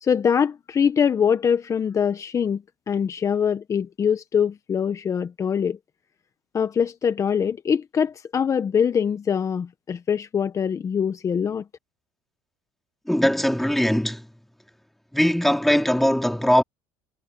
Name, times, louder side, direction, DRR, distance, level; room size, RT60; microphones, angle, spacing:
voice 1, 0.0-5.8 6.5-11.6, left 7 dB, 30° left, 1.1 m, -23 dB
voice 2, 13.1-14.3 15.1-16.6, equal, ahead, 2.4 m, -20 dB
supercardioid pair, 100°, 10 cm